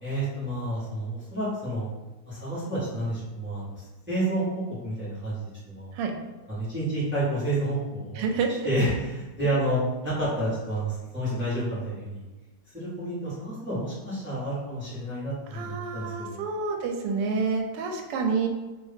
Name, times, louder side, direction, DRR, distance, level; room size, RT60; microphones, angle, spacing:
voice 1, 0.0-1.9 2.2-5.4 5.7-5.9 6.5-8.2 8.6-12.2 12.7-16.4, right 1 dB, 5° right, -11 dB, 1.1 m, -30 dB
voice 2, 8.2-8.5 15.5-18.5, right 5 dB, 80° right, 2 dB, 1.2 m, -28 dB
3.1 x 2.7 x 3.4 m, 1.2 s
omnidirectional pair, 1.9 m